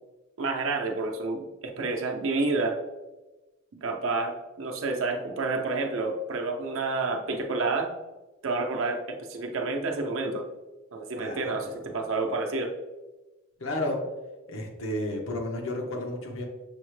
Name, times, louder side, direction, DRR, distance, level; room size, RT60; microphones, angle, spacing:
voice 1, 0.4-2.8 3.7-7.9 8.4-10.4 10.9-12.7, right 3 dB, 85° right, 3 dB, 0.6 m, -29 dB
voice 2, 11.2-12.0 13.6-14.0 14.5-16.4, left 1 dB, 80° left, 1 dB, 0.9 m, -32 dB
6.3 x 2.1 x 3.1 m, 1.1 s
head